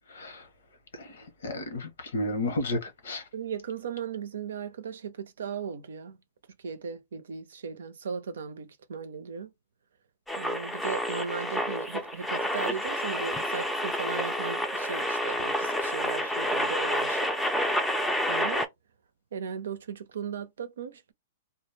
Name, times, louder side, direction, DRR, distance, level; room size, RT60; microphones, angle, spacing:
voice 1, 0.1-0.5 0.9-3.2, left 1 dB, 85° left, 1.0 m, -33 dB
voice 2, 3.3-6.2 6.6-9.5 10.4-17.3 17.6-18.7 19.3-21.1, right 6 dB, 85° right, 0.6 m, -37 dB
Tuning AM radio, 10.3-18.7, equal, 5° left, 0.4 m, -29 dB
2.3 x 2.1 x 3.2 m
hypercardioid pair, 135°, 0 cm